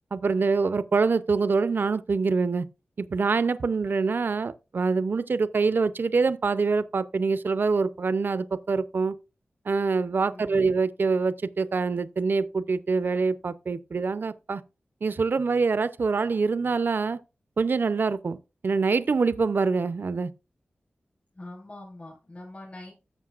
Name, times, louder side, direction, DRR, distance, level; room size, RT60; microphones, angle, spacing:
voice 1, 0.1-2.7 3.0-9.2 9.7-14.6 15.0-17.2 17.6-18.4 18.6-20.3, right 4 dB, 60° right, 0.5 m, -25 dB
voice 2, 10.3-10.7 21.3-22.9, left 2 dB, 40° left, 4.5 m, -43 dB
13.5 x 7.0 x 2.4 m
wide cardioid pair, 85°, 4 cm